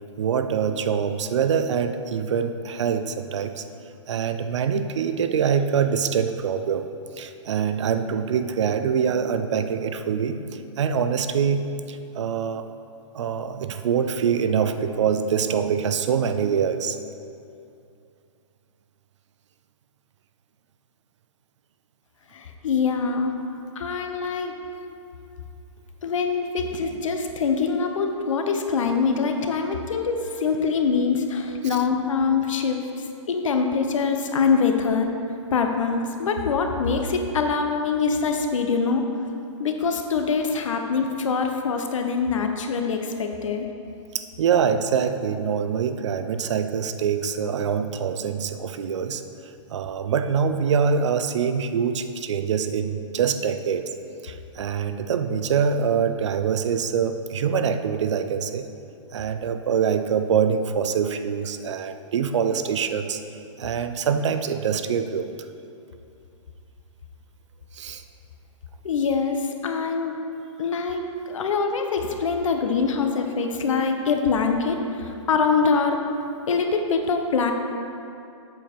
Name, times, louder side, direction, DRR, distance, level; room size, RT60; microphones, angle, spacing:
voice 1, 0.2-3.6 4.1-6.9 7.2-10.4 10.8-12.6 13.1-17.0 31.6-31.8 44.1-49.2 49.7-53.9 54.2-58.7 59.1-63.2 63.6-65.3 67.7-68.0, right 7 dB, 65° right, 9 dB, 0.6 m, -24 dB
voice 2, 22.3-23.3 23.8-24.5 26.0-32.8 33.3-35.1 35.5-39.0 39.6-43.7 68.8-70.1 70.6-76.0 76.5-77.5, left 5 dB, 80° left, 4 dB, 0.9 m, -24 dB
7.7 x 7.0 x 4.4 m, 2.7 s
hypercardioid pair, 160°, 16 cm